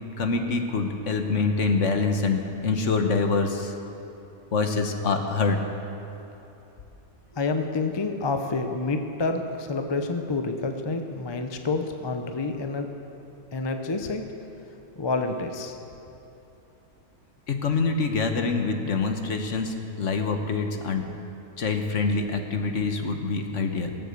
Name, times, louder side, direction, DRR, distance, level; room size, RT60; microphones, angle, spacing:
voice 1, 0.2-3.7 4.5-5.6 17.5-21.1 21.6-23.9, left 4 dB, 55° left, 5 dB, 1.3 m, -25 dB
voice 2, 7.3-12.9 13.5-14.3 15.0-15.8, left 3 dB, 25° left, 6 dB, 0.5 m, -28 dB
18.5 x 7.8 x 8.1 m, 3.0 s
omnidirectional pair, 1.5 m